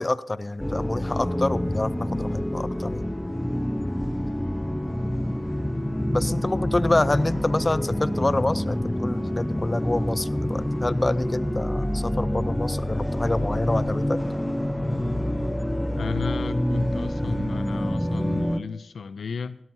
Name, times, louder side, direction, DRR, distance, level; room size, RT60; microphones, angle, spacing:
voice 1, 0.0-3.1 6.1-14.2, left 2 dB, 30° left, 0.6 m, -27 dB
sound 1, 0.6-18.6, equal, 10° left, 0.8 m, -27 dB
voice 2, 16.0-19.6, left 5 dB, 80° left, 0.4 m, -33 dB
17.0 x 12.5 x 2.8 m
cardioid pair, 50°, 0 cm